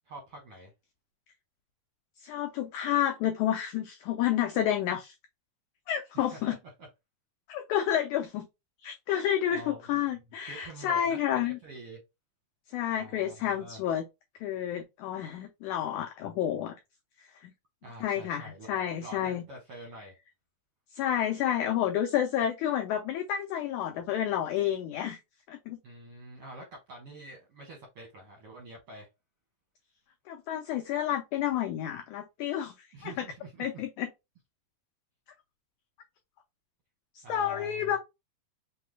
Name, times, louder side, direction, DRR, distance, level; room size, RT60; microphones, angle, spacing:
voice 1, 0.0-0.7 6.1-6.9 9.5-10.0 10.4-12.0 12.9-13.8 17.8-20.1 25.8-29.1 32.9-33.8 37.2-37.9, right 2 dB, 70° right, 1.3 m, -47 dB
voice 2, 2.2-5.1 5.9-6.6 7.5-8.5 8.8-11.6 12.7-14.0 14.4-16.7 17.4-17.5 18.0-19.4 20.9-25.2 25.5-25.8 30.3-33.3 33.6-34.1 37.1-38.0, left 10 dB, 90° left, 1.7 m, -30 dB
5.7 x 2.2 x 3.2 m
omnidirectional pair, 4.1 m